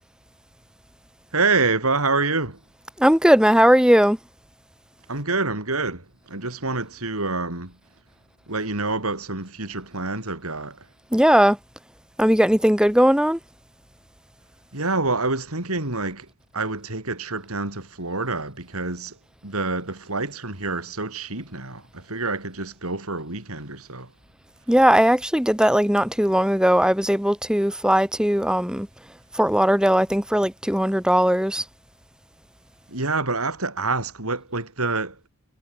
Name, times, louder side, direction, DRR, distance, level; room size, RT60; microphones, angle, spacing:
voice 1, 1.3-2.6 5.1-7.8 8.5-10.9 14.7-16.3 16.5-19.2 19.4-24.1 32.9-35.3, right 3 dB, 85° right, 5.3 m, -27 dB
voice 2, 3.0-4.2 11.1-11.6 12.2-13.4 24.7-28.9 29.3-31.7, equal, 5° right, 1.9 m, -18 dB
head